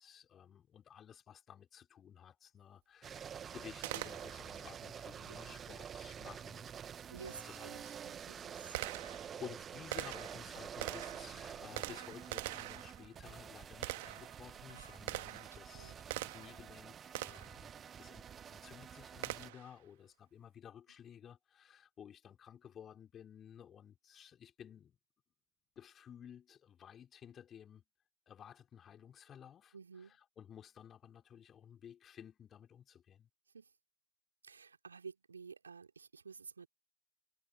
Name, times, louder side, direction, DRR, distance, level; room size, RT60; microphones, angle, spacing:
voice 1, 0.0-6.7 7.1-7.8 8.3-25.0 25.8-27.8 28.3-29.7 30.4-33.3, left 9 dB, 20° left, 4.1 m, -55 dB
sound 1, 3.0-19.5, right 8 dB, 20° right, 1.3 m, -49 dB
Gunshot gunfire, 3.8-4.6 7.0-7.1 7.8-16.7 17.1-17.6 19.2-19.8, right 19 dB, 45° right, 1.8 m, -44 dB
voice 2, 7.1-8.8 14.7-15.0 15.7-16.0 29.7-30.2 33.5-33.7 34.4-36.7, right 5 dB, 70° right, 3.9 m, -52 dB
figure-of-eight pair, 100°, 0 cm